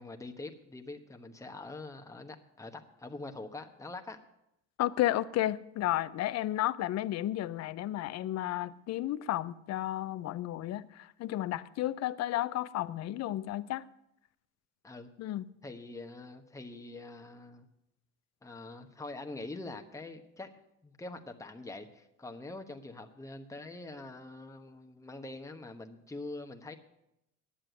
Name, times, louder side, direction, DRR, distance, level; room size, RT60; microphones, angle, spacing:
voice 1, 0.0-4.2 14.8-15.1 15.6-17.7 18.4-20.5 20.8-26.7, left 2 dB, 10° left, 1.1 m, -44 dB
voice 2, 4.8-13.8 15.2-15.4, left 14 dB, 55° left, 0.6 m, -32 dB
10.0 x 7.6 x 9.1 m
supercardioid pair, 85°, 31 cm